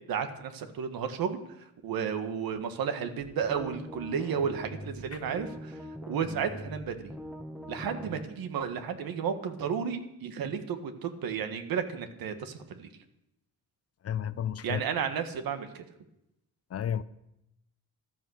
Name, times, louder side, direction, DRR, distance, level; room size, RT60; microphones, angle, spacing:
voice 1, 0.1-5.8 6.1-7.1 7.7-12.9 14.6-15.8, right 7 dB, 85° right, 8 dB, 1.8 m, -33 dB
sound 1, 3.2-8.2, equal, 5° right, 1.1 m, -42 dB
voice 2, 14.0-14.8 16.7-17.0, left 9 dB, 45° left, 16 dB, 0.6 m, -32 dB
13.5 x 13.0 x 6.5 m, 0.85 s
cardioid pair, 130°, 35 cm